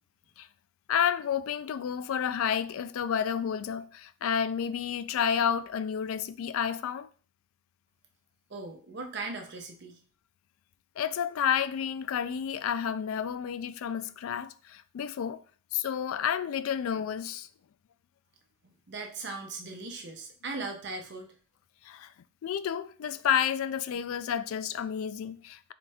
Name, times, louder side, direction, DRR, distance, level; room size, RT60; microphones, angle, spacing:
voice 1, 0.9-7.1 11.0-15.4 15.7-17.5 21.8-22.1 22.4-25.7, left 8 dB, 80° left, 0.3 m, -30 dB
voice 2, 8.5-10.0 18.6-21.3, right 3 dB, 55° right, 0.8 m, -39 dB
3.8 x 3.3 x 3.4 m
head